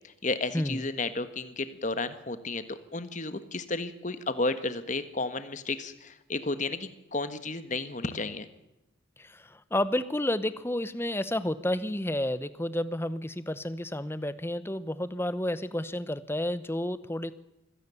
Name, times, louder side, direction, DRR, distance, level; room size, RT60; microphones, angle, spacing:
voice 1, 0.2-8.5, left 3 dB, 35° left, 12 dB, 1.5 m, -32 dB
voice 2, 9.2-17.3, left 1 dB, 10° left, 14 dB, 0.9 m, -31 dB
24.5 x 16.5 x 7.1 m, 0.92 s
head